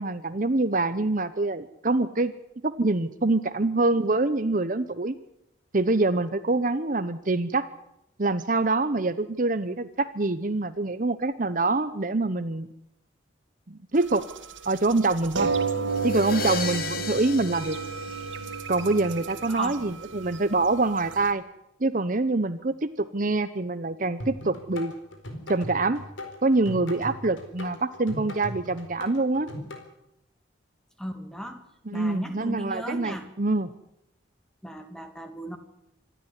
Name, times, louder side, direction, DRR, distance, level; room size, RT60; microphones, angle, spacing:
voice 1, 0.0-2.3 2.6-5.2 5.7-7.7 8.2-12.7 13.7-14.3 14.6-15.5 16.0-17.8 18.7-21.4 21.8-24.9 25.5-26.0 26.4-29.5 31.9-33.7, right 2 dB, 40° right, 12 dB, 0.9 m, -25 dB
sound 1, 14.1-21.2, right 5 dB, 75° right, 2.3 m, -32 dB
sound 2, 15.9-18.8, left 5 dB, 50° left, 2.5 m, -34 dB
voice 2, 19.5-19.9 31.0-31.6 31.9-33.3 34.6-35.6, equal, 5° left, 7 dB, 2.1 m, -36 dB
sound 3, 24.2-29.8, left 1 dB, 80° left, 4.4 m, -38 dB
26.0 x 13.0 x 9.8 m, 0.81 s
head